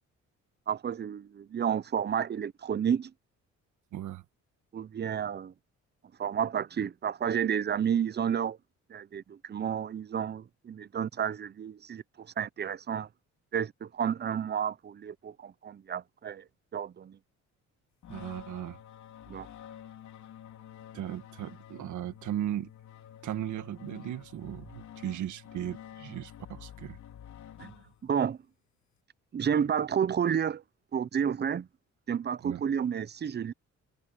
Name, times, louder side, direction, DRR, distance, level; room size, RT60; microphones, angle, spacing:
voice 1, 0.7-3.1 4.7-5.5 6.2-8.6 8.9-13.1 13.5-16.4 16.7-17.2 19.3-19.5 28.0-28.4 29.3-30.6 30.9-31.7 32.1-33.5, right 8 dB, 35° right, 0.7 m, -31 dB
voice 2, 3.9-4.2 18.1-18.8 20.9-22.7 23.2-27.0 27.6-27.8 32.4-32.6, right 11 dB, 75° right, 1.7 m, -37 dB
sound 1, 18.0-28.3, left 10 dB, 70° left, 3.4 m, -49 dB
cardioid pair, 90°, 30 cm